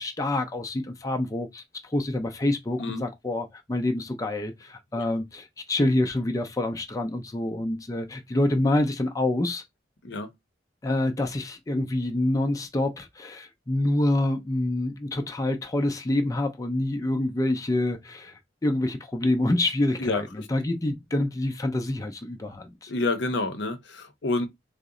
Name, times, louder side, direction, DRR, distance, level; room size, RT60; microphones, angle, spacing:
voice 1, 0.0-9.6 10.8-22.9, left 1 dB, 20° left, 0.4 m, -27 dB
voice 2, 20.0-20.5 22.9-24.5, left 2 dB, 70° left, 0.7 m, -28 dB
3.8 x 2.1 x 3.7 m
head